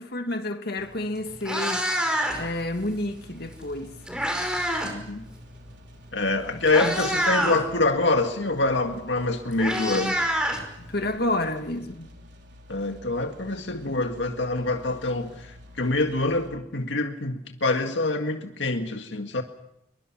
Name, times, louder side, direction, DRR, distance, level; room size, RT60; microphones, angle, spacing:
voice 1, 0.0-1.9 2.4-3.9 6.5-7.0 10.8-12.1, left 1 dB, 60° left, 2.3 m, -30 dB
Meow, 0.8-1.0 1.3-2.6 3.6-5.0 5.3-5.5 6.2-6.3 6.7-7.6 8.9-9.0 9.2-11.1, equal, 5° right, 5.1 m, -27 dB
sound 1, 2.3-16.5, left 1 dB, 70° right, 4.2 m, -49 dB
voice 2, 4.8-5.2 6.1-10.2 12.7-19.4, left 2 dB, 85° left, 1.9 m, -26 dB
26.5 x 23.5 x 6.1 m
head